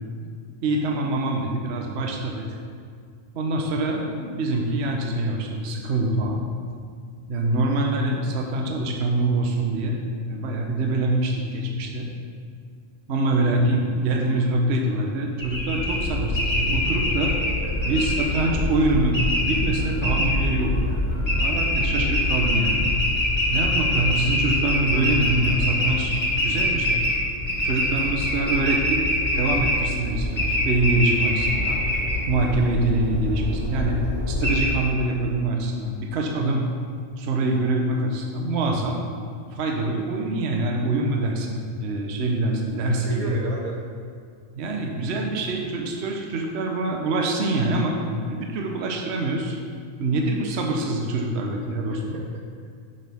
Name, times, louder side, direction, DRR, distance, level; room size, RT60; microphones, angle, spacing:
voice 1, 0.6-2.5 3.3-6.4 7.3-12.1 13.1-17.3 17.9-21.0 21.4-22.9 23.5-26.1 26.4-27.0 27.6-29.0 29.3-31.8 32.3-34.0 34.3-36.7 37.2-39.0 39.5-43.4 44.5-49.6 50.0-52.2, right 2 dB, 55° right, 1 dB, 1.1 m, -25 dB
sound 1, 15.4-34.7, left 1 dB, 20° left, 1.6 m, -24 dB
voice 2, 17.6-17.9 42.9-43.8 51.9-52.7, right 3 dB, 85° right, -1 dB, 1.6 m, -35 dB
10.0 x 6.7 x 3.5 m, 2.1 s
omnidirectional pair, 1.5 m